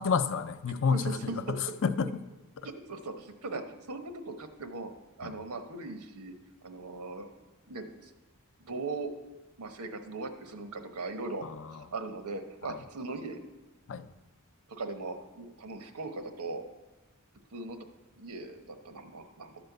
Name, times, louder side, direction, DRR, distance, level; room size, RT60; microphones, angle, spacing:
voice 1, 0.0-2.1 2.6-2.7 5.2-5.3 11.4-11.7 13.9-14.1, left 5 dB, 60° left, 12 dB, 0.5 m, -30 dB
voice 2, 0.9-1.6 2.6-3.6 3.9-4.9 5.2-6.3 6.6-7.3 7.7-8.1 8.6-9.1 9.6-13.4 14.7-16.6 17.5-17.8 18.1-19.6, right 3 dB, 90° right, 8 dB, 1.0 m, -39 dB
12.5 x 4.4 x 7.9 m, 1.1 s
head